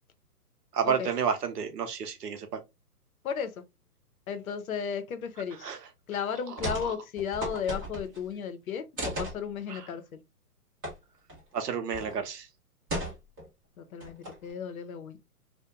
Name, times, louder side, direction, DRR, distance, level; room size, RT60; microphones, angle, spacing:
voice 1, 0.7-2.6 5.6-5.8 6.8-6.9 9.7-9.8 11.5-12.5, right 7 dB, 80° right, 0.8 m, -30 dB
voice 2, 4.3-5.7 6.1-10.0 13.8-15.2, left 7 dB, 60° left, 0.6 m, -34 dB
sound 1, 6.6-6.9 7.2-8.3 9.0-9.4 10.8-10.9 11.3-11.4 11.9-12.2 12.9-13.5 14.0-14.5, right 1 dB, 15° right, 0.5 m, -35 dB
2.3 x 2.2 x 2.8 m
hypercardioid pair, 135°, 47 cm